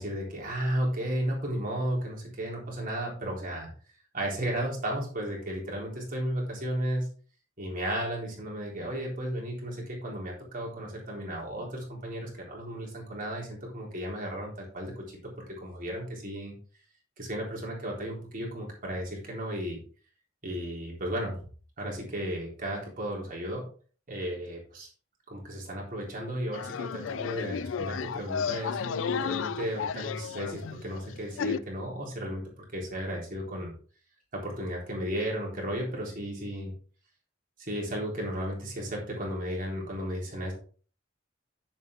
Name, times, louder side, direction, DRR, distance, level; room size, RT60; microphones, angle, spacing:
voice 1, 0.0-3.7 4.1-7.1 7.6-15.1 15.5-16.5 17.2-19.8 20.4-21.4 21.8-23.6 24.1-24.9 25.3-32.4 32.7-33.7 34.3-36.7 37.6-40.5, equal, 45° right, -2 dB, 3.7 m, -34 dB
sound 1, 26.5-31.6, left 6 dB, 75° left, 0.4 m, -33 dB
9.5 x 7.5 x 3.6 m, 0.41 s
head